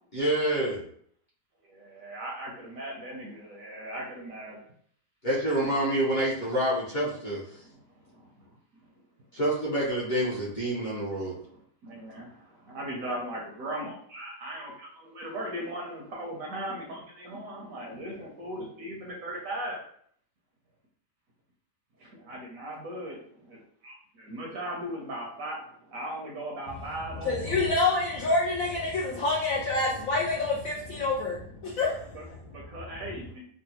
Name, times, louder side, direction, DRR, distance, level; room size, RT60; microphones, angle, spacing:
voice 1, 0.1-0.8 5.2-7.4 9.3-11.4, right 1 dB, 40° left, -9 dB, 0.7 m, -27 dB
voice 2, 1.7-4.6 8.1-8.2 11.5-19.8 22.0-23.2 23.4-23.6 23.8-25.6 25.9-27.5 31.8-32.2 32.5-33.4, right 1 dB, 65° right, -2 dB, 1.0 m, -38 dB
voice 3, 27.2-32.8, left 3 dB, 70° left, -3 dB, 0.8 m, -28 dB
3.7 x 2.2 x 2.8 m, 0.62 s
omnidirectional pair, 1.9 m